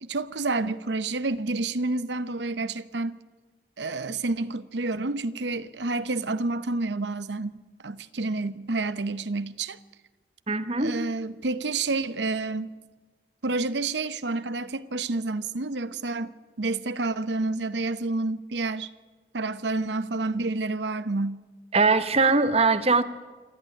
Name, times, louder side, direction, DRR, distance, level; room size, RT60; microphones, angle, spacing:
voice 1, 0.0-3.2 3.8-9.8 10.8-12.7 13.4-18.9 19.3-21.4, right 3 dB, 80° right, 0.9 m, -29 dB
voice 2, 10.5-10.9 21.7-23.0, right 4 dB, 35° right, 1.1 m, -21 dB
27.0 x 12.0 x 9.8 m
head